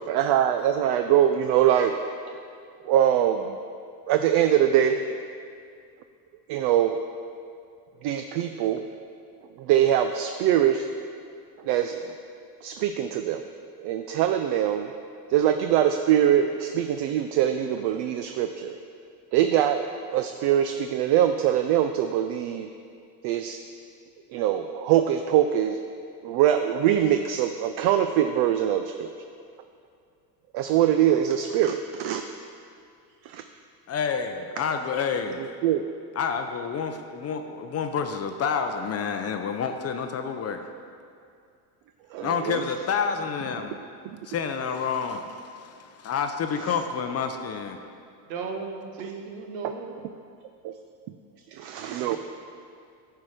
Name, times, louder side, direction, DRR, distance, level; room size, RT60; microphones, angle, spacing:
voice 1, 0.1-1.9 2.8-3.6 4.1-5.0 6.5-7.0 8.0-8.8 9.6-10.9 11.6-12.0 12.6-13.4 13.8-14.9 15.3-18.8 19.3-19.8 20.1-22.7 23.2-23.6 24.3-25.8 26.2-29.1 30.5-32.2 33.2-33.4 35.6-35.9 42.1-42.6 44.0-44.2 50.6-50.7 51.5-52.2, right 10 dB, 55° right, 7 dB, 0.5 m, -23 dB
voice 2, 33.9-35.4 36.2-40.7 42.2-43.8 44.2-47.8, left 6 dB, 30° left, 6 dB, 0.5 m, -29 dB
voice 3, 48.3-49.9 51.8-52.2, right 4 dB, 75° right, 4 dB, 1.1 m, -36 dB
9.3 x 4.6 x 4.9 m, 2.4 s
supercardioid pair, 90°, 50 cm